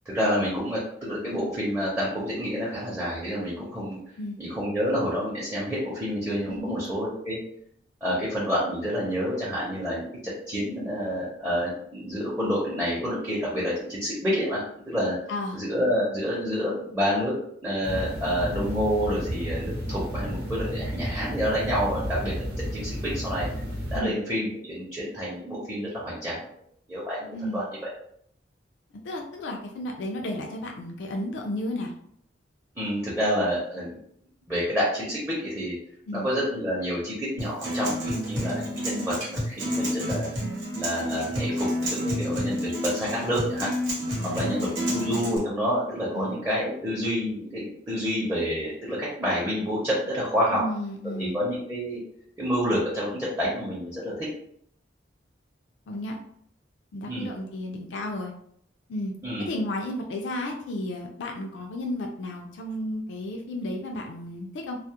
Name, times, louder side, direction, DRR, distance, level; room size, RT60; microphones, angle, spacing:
voice 1, 0.1-4.0 4.4-7.4 8.0-14.6 14.9-15.1 15.5-17.3 17.6-23.5 23.9-26.4 26.9-27.6 32.8-33.9 34.5-35.7 36.1-40.3 40.8-43.7 44.3-50.6 51.2-52.0 52.4-54.3 57.0-57.3 59.2-59.5, equal, 10° right, -7 dB, 0.6 m, -28 dB
sound 1, 17.8-24.0, equal, 60° right, 0.7 m, -32 dB
voice 2, 27.3-27.6 29.0-31.9 36.1-36.3 44.2-45.1 46.1-46.4 50.5-51.4 55.9-56.2 56.9-58.3 58.9-59.1 59.4-64.8, left 1 dB, 75° left, 1 dB, 0.4 m, -33 dB
Acoustic guitar, 37.4-45.4, equal, 90° right, 0.9 m, -29 dB
2.3 x 2.0 x 2.8 m, 0.68 s
head